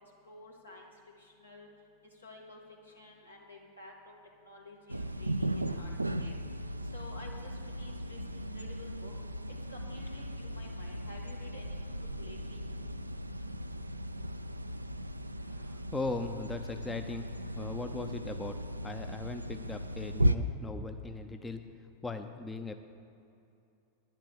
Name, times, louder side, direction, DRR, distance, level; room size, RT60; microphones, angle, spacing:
voice 1, 0.2-0.9 1.2-1.7 2.2-2.6 2.9-4.1 4.4-5.9 6.2-6.4 6.9-7.5 7.8-9.1 9.7-12.6, left 2 dB, 85° left, -2 dB, 2.1 m, -51 dB
sound 1, 4.9-20.4, right 1 dB, 85° right, 0.4 m, -36 dB
voice 2, 15.6-17.3 17.5-18.6 18.8-21.6 22.0-22.7, left 3 dB, 10° left, 7 dB, 0.6 m, -39 dB
10.5 x 7.5 x 7.1 m, 2.7 s
figure-of-eight pair, 90°, 0 cm